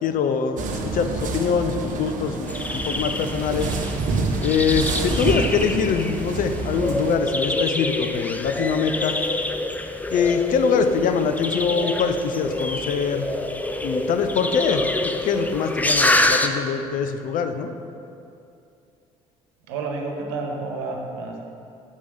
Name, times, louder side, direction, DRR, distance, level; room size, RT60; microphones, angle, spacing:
voice 1, 0.0-3.7 4.4-9.2 10.1-13.3 13.8-14.8 15.2-17.7, left 6 dB, 60° left, 8 dB, 0.7 m, -23 dB
sound 1, 0.6-7.2, right 3 dB, 55° right, 1.0 m, -28 dB
sound 2, 2.5-16.5, left 1 dB, 10° left, 0.6 m, -26 dB
voice 2, 19.7-21.4, right 3 dB, 85° right, 2 dB, 1.1 m, -30 dB
7.4 x 5.2 x 6.5 m, 2.6 s
hypercardioid pair, 60°, 16 cm